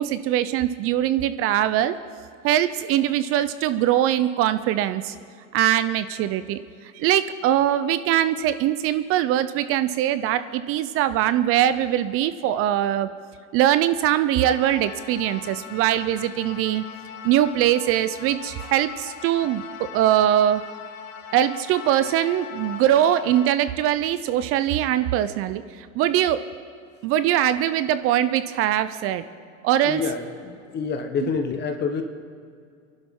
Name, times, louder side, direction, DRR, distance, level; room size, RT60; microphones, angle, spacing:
voice 1, 0.0-2.0 2.4-5.1 5.5-6.6 6.9-13.1 13.5-16.8 17.2-20.7 21.3-25.6 25.9-26.5 27.0-29.2 29.6-30.0, right 12 dB, 35° right, 13 dB, 0.5 m, -22 dB
sound 1, 14.4-23.5, left 8 dB, 80° left, 1.6 m, -40 dB
voice 2, 29.8-32.0, left 5 dB, 25° left, 6 dB, 1.1 m, -27 dB
24.5 x 11.5 x 3.7 m, 2.4 s
supercardioid pair, 125°, 39 cm